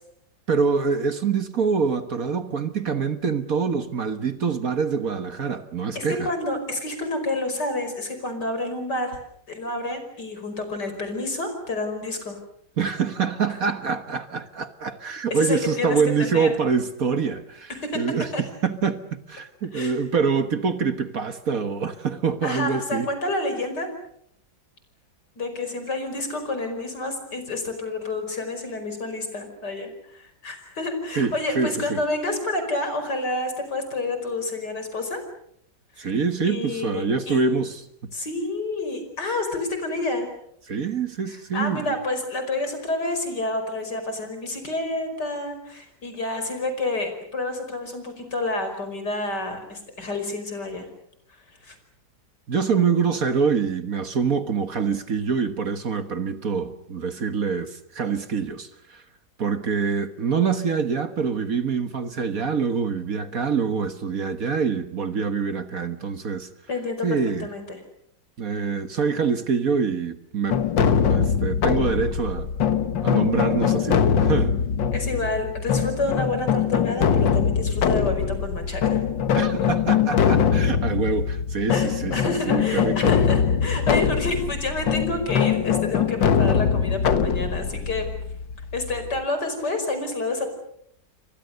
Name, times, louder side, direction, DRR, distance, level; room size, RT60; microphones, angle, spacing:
voice 1, 0.5-6.3 12.8-19.0 19.3-23.1 31.2-32.0 36.0-38.1 40.7-41.9 52.5-59.0 59.4-66.5 67.0-67.5 68.4-72.5 73.0-74.6 79.3-83.1 83.9-84.0, right 5 dB, 50° right, 1.7 m, -25 dB
voice 2, 6.0-9.2 9.5-12.4 15.3-16.5 17.7-18.0 18.3-18.4 19.7-20.0 22.4-23.9 25.4-35.2 36.0-36.1 36.4-37.4 38.1-40.3 41.3-50.9 51.6-51.8 66.7-67.8 74.9-79.0 81.7-88.1 88.7-90.5, left 2 dB, 65° left, 5.8 m, -29 dB
sound 1, 70.5-89.2, left 7 dB, 90° left, 2.1 m, -22 dB
29.5 x 25.0 x 6.7 m
omnidirectional pair, 2.0 m